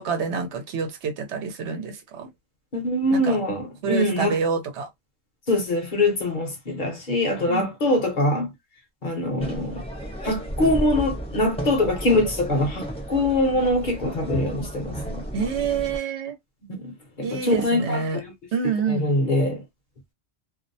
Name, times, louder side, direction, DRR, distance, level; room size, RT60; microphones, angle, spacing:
voice 1, 0.0-2.3 3.1-3.4 3.8-4.9 7.5-7.7 15.3-16.4 17.2-18.2 18.5-19.1, right 5 dB, 80° right, 1.0 m, -27 dB
voice 2, 2.7-4.4 5.5-8.5 9.0-9.8 10.2-15.2 16.6-18.3 18.9-19.6, left 1 dB, 50° left, 0.8 m, -23 dB
sound 1, 9.4-16.0, right 1 dB, 5° left, 0.7 m, -33 dB
2.5 x 2.0 x 2.6 m
omnidirectional pair, 1.2 m